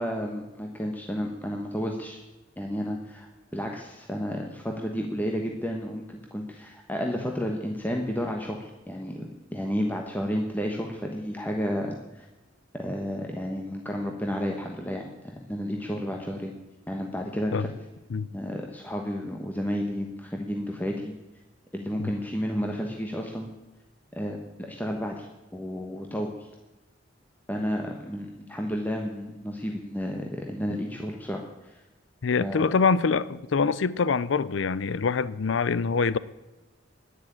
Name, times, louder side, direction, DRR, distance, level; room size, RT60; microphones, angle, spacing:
voice 1, 0.0-2.2 2.6-12.3 12.7-16.5 16.9-17.7 18.3-21.1 21.7-23.5 24.2-26.5 27.5-31.8 32.4-32.7, equal, 10° left, 1.2 m, -32 dB
voice 2, 32.2-36.2, left 5 dB, 65° left, 0.5 m, -25 dB
10.5 x 10.0 x 8.8 m
head